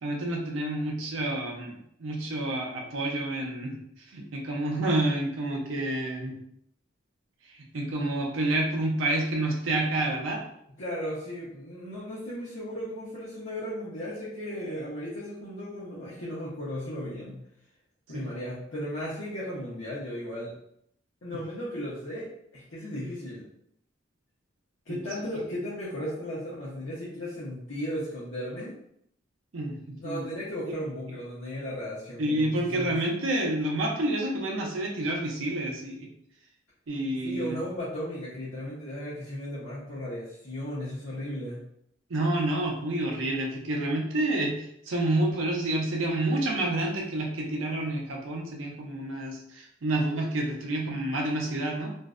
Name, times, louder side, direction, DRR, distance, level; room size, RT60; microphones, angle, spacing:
voice 1, 0.0-6.4 7.4-10.4 18.1-18.2 24.9-25.0 29.5-30.2 30.7-30.8 32.2-36.1 36.9-37.6 42.1-51.9, right 1 dB, 80° right, 0 dB, 0.5 m, -29 dB
voice 2, 10.8-17.4 18.1-20.5 21.2-22.3 22.5-23.4 24.9-28.7 30.0-33.0 37.2-41.6, equal, 65° left, -9 dB, 0.7 m, -35 dB
2.5 x 2.1 x 2.4 m, 0.73 s
head